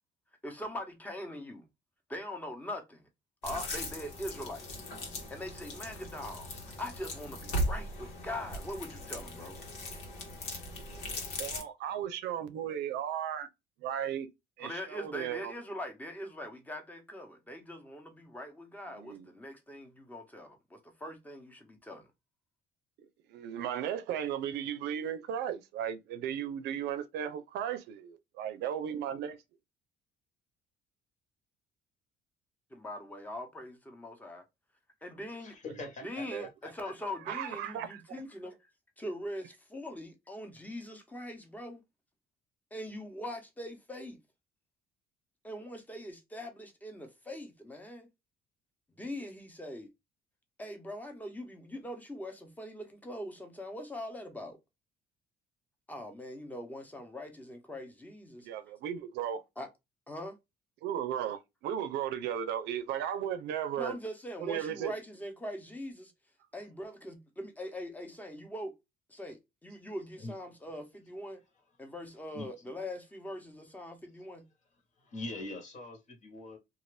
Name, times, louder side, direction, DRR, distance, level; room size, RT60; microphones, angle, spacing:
voice 1, 0.4-1.7 2.1-3.1 3.4-4.6 5.3-6.5 6.8-9.6 14.6-22.1 32.7-34.4 35.0-35.6 36.0-38.6 39.0-41.8 42.7-44.2 45.4-48.1 49.0-49.9 50.6-54.6 55.9-58.5 59.6-59.7 60.1-60.4 63.8-66.1 66.5-68.7 69.1-71.4 71.8-74.5, left 1 dB, 10° left, 0.9 m, -42 dB
sound 1, 3.4-11.6, left 1 dB, 85° left, 1.2 m, -38 dB
voice 2, 11.4-13.5 13.8-14.3 14.6-15.5 19.0-19.3 23.3-29.4 36.3-36.5 37.3-38.0 58.4-59.4 60.8-63.9 64.4-64.9, right 9 dB, 80° right, 0.6 m, -35 dB
voice 3, 35.4-36.9 70.2-70.3 72.3-72.5 75.0-76.6, left 2 dB, 45° left, 1.3 m, -43 dB
2.6 x 2.5 x 3.2 m
cardioid pair, 110°, 17 cm